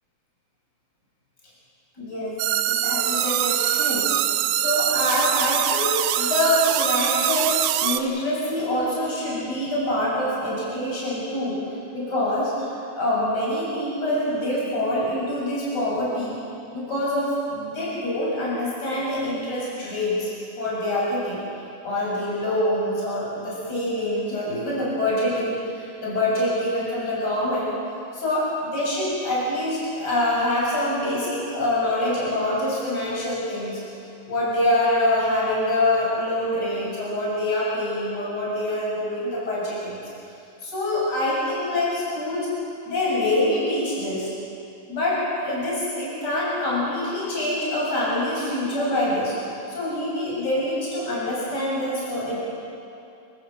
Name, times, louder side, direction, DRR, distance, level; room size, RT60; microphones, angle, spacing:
voice 1, 2.0-2.4 2.7-4.1 4.5-11.6 11.9-16.4 16.7-20.3 20.6-21.4 21.8-27.7 28.1-33.8 34.3-40.0 40.6-42.5 42.8-44.3 44.9-49.4 49.7-52.4, left 1 dB, 20° left, -6 dB, 7.5 m, -25 dB
sound 1, 2.4-8.0, right 12 dB, 85° right, 3.4 m, -23 dB
29.5 x 15.0 x 7.4 m, 2.6 s
omnidirectional pair, 5.8 m